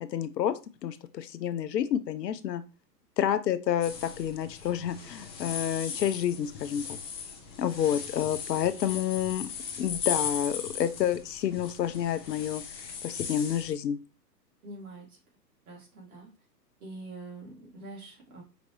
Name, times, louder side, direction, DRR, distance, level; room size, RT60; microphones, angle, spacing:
voice 1, 0.0-0.5 0.8-2.6 3.2-6.8 7.6-9.5 9.8-12.6 13.0-14.0, left 10 dB, 75° left, 12 dB, 0.7 m, -29 dB
sound 1, 3.8-13.7, left 6 dB, 15° left, 0.4 m, -38 dB
voice 2, 14.6-15.2 15.7-16.3 16.8-18.4, right 2 dB, 60° right, -3 dB, 2.3 m, -44 dB
5.0 x 2.6 x 3.1 m, 0.31 s
hypercardioid pair, 120°, 50 cm